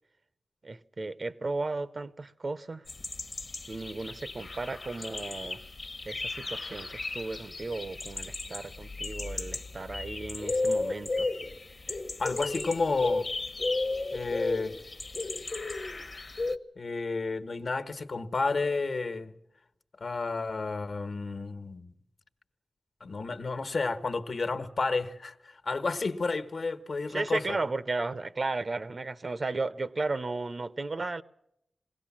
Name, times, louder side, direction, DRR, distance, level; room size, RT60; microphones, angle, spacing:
voice 1, 0.6-2.8 3.7-5.6 6.0-11.3 27.1-31.2, right 3 dB, 45° right, 0.8 m, -34 dB
sound 1, 2.9-16.6, left 3 dB, 40° left, 1.1 m, -34 dB
voice 2, 11.9-13.3 14.1-14.8 16.8-19.3 20.0-21.9 23.0-27.6, left 3 dB, 60° left, 1.3 m, -31 dB
22.0 x 17.5 x 7.4 m
wide cardioid pair, 110°, 0 cm